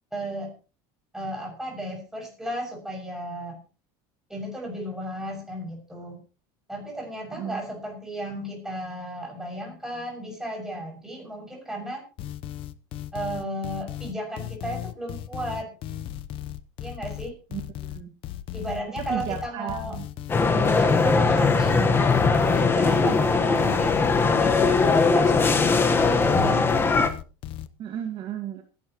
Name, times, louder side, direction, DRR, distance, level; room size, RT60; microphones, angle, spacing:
voice 1, 0.1-0.5 1.1-3.6 4.3-6.2 6.7-12.0 13.1-15.7 16.8-17.3 18.5-20.0 20.7-21.8 22.5-26.7, right 1 dB, 5° right, -1 dB, 6.6 m, -34 dB
voice 2, 7.3-7.6 17.5-18.1 19.0-20.1 21.7-22.0 22.9-23.2 27.8-28.6, right 9 dB, 40° right, 4 dB, 1.9 m, -34 dB
sound 1, 12.2-27.7, left 12 dB, 45° left, 0.9 m, -36 dB
sound 2, 20.3-27.1, left 4 dB, 20° left, 1.3 m, -20 dB
25.5 x 11.0 x 3.1 m, 0.35 s
cardioid pair, 150°, 13 cm